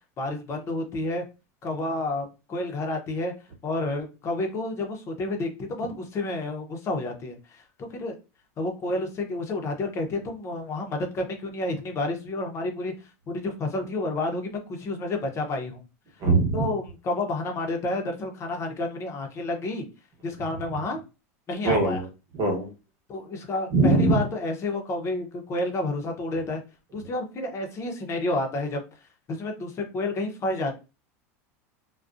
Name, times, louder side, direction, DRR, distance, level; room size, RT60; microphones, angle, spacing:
voice 1, 0.2-1.2 1.6-3.3 3.6-8.1 8.6-12.9 13.3-15.8 16.5-19.9 20.2-21.0 21.5-22.0 23.1-26.6 26.9-28.8 29.3-30.8, left 2 dB, 35° left, 3 dB, 0.7 m, -30 dB
voice 2, 16.2-16.7 21.6-22.1 22.3-22.7 23.7-24.2, right 3 dB, 50° right, 2 dB, 1.1 m, -21 dB
2.4 x 2.2 x 2.5 m, 0.29 s
supercardioid pair, 110°, 8 cm